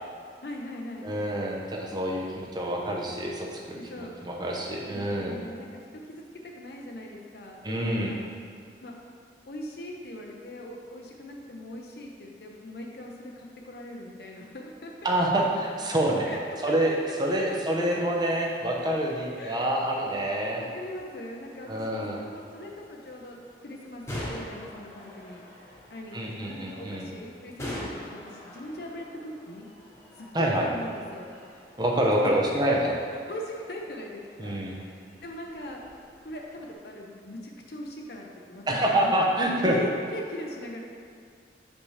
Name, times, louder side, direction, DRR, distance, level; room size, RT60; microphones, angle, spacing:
voice 1, 0.4-1.1 3.7-4.1 4.9-8.2 8.8-8.9 9.5-15.1 16.2-16.8 17.3-17.6 19.4-19.8 20.6-25.4 25.9-29.7 30.2-31.3 32.5-35.9 36.2-38.6 39.0-39.2 39.6-40.8, left 1 dB, 60° left, 0 dB, 0.6 m, -40 dB
voice 2, 1.0-5.4 7.6-8.1 15.0-16.3 16.6-16.9 17.2-20.6 21.7-22.3 26.1-27.1 30.3-30.7 31.8-32.9 34.4-34.8 38.7-39.8, right 1 dB, 25° right, -1 dB, 0.7 m, -27 dB
sound 1, 18.8-36.7, equal, 15° left, 1.1 m, -45 dB
7.0 x 5.2 x 3.2 m, 2.3 s
head